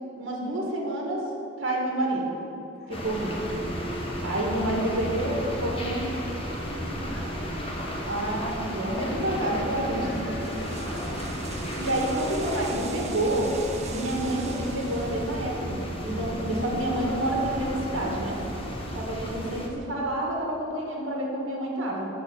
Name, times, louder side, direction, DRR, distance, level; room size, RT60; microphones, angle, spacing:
voice 1, 0.2-1.3 1.6-2.4 2.9-3.4 4.2-6.1 8.1-10.2 11.8-13.5 13.9-15.8 16.0-18.4 18.9-22.1, right 1 dB, 65° right, -1 dB, 1.7 m, -28 dB
voice 2, 2.8-3.5 3.8-7.9 9.8-11.9 17.7-18.3 18.5-18.7, equal, ahead, -8 dB, 2.4 m, -43 dB
sound 1, 2.9-19.7, equal, 25° left, 1.2 m, -33 dB
sound 2, 10.0-15.6, right 6 dB, 35° right, 0.7 m, -44 dB
13.0 x 4.4 x 7.1 m, 3.0 s
head